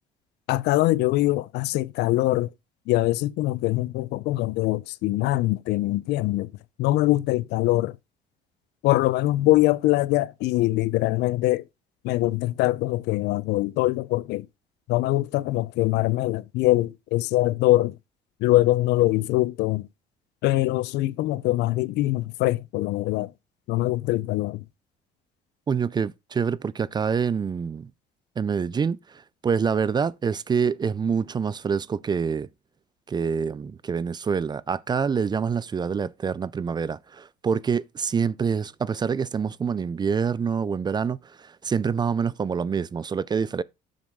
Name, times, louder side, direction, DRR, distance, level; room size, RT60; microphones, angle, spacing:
voice 1, 0.5-2.5 2.9-6.5 6.8-8.0 8.8-11.7 12.0-14.5 14.9-18.0 18.4-19.9 20.4-23.3 23.7-24.6, left 17 dB, 85° left, 0.5 m, -23 dB
voice 2, 25.7-27.9 28.4-32.5 33.1-43.6, right 6 dB, 25° right, 0.4 m, -26 dB
7.6 x 7.0 x 3.6 m
cardioid pair, 110°, 17 cm